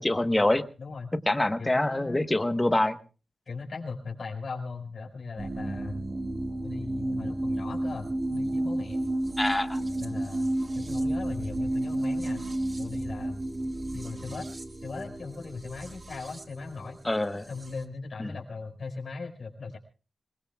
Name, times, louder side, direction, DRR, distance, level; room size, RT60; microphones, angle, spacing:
voice 1, 0.0-0.6 1.3-3.0 9.4-9.8 17.0-17.5 18.2-18.3, left 1 dB, 15° left, 10 dB, 1.1 m, -25 dB
voice 2, 0.8-1.1 1.6-2.2 3.5-6.0 6.6-9.0 10.0-10.5 10.7-12.5 12.8-13.4 13.9-14.5 14.7-17.0 17.5-19.8, left 4 dB, 65° left, 2 dB, 4.9 m, -38 dB
sound 1, 5.4-17.8, right 1 dB, 35° right, 1.6 m, -32 dB
27.0 x 21.0 x 2.3 m, 0.35 s
wide cardioid pair, 105°, 0 cm